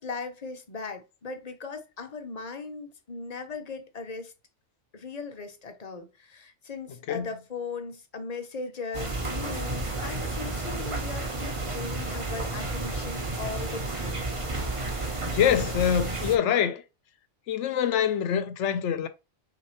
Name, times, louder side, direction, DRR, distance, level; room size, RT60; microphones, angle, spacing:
voice 1, 0.0-4.3 4.9-14.3, left 4 dB, 40° left, 0.6 m, -38 dB
sound 1, 8.9-16.4, right 2 dB, 30° right, 0.9 m, -31 dB
voice 2, 15.3-16.8 17.5-19.1, left 9 dB, 75° left, 0.9 m, -25 dB
5.8 x 2.7 x 3.1 m
omnidirectional pair, 1.3 m